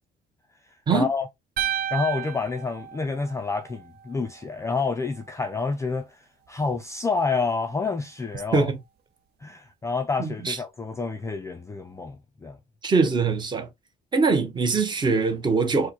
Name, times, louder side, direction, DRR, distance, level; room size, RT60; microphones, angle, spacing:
voice 1, 0.9-1.3 1.9-6.1 6.5-8.7 9.4-12.2 12.4-12.6, left 4 dB, 15° left, 0.4 m, -28 dB
sound 1, 1.6-3.8, right 11 dB, 65° right, 0.6 m, -31 dB
voice 2, 10.2-10.6 12.8-13.7 14.1-15.9, right 4 dB, 25° right, 0.8 m, -22 dB
4.5 x 2.1 x 2.8 m
cardioid pair, 155°, 18 cm